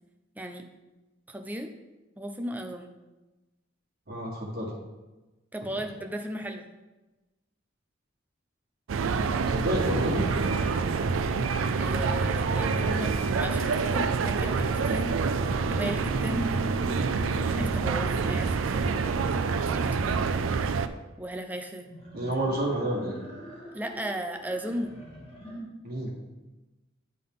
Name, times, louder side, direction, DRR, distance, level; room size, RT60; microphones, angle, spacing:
voice 1, 1.3-1.7 2.2-2.9 5.5-6.6 11.8-15.1 15.7-16.5 17.6-18.9 19.6-20.2 21.2-21.9 23.7-25.0, equal, 10° right, 4 dB, 0.5 m, -36 dB
voice 2, 4.1-4.7 9.4-10.5 18.0-18.1 22.1-23.1 25.8-26.1, right 1 dB, 50° right, -3 dB, 1.7 m, -29 dB
sound 1, 8.9-20.9, right 4 dB, 75° right, 0.4 m, -27 dB
sound 2, 14.3-18.7 21.8-25.6, right 1 dB, 30° left, 1.8 m, -43 dB
10.5 x 3.8 x 3.7 m, 1.1 s
head